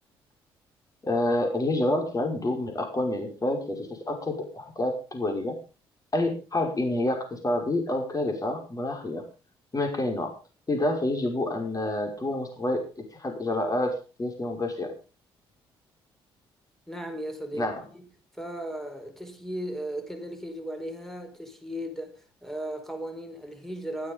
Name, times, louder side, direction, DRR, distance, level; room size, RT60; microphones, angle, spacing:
voice 1, 1.0-5.6 6.1-9.2 9.7-10.3 10.7-14.9 17.6-17.7, left 1 dB, 30° left, 5.5 m, -28 dB
voice 2, 16.9-18.0 18.3-22.1 22.4-24.1, right 1 dB, 5° left, 4.9 m, -36 dB
16.0 x 12.5 x 5.4 m
figure-of-eight pair, 45°, 13 cm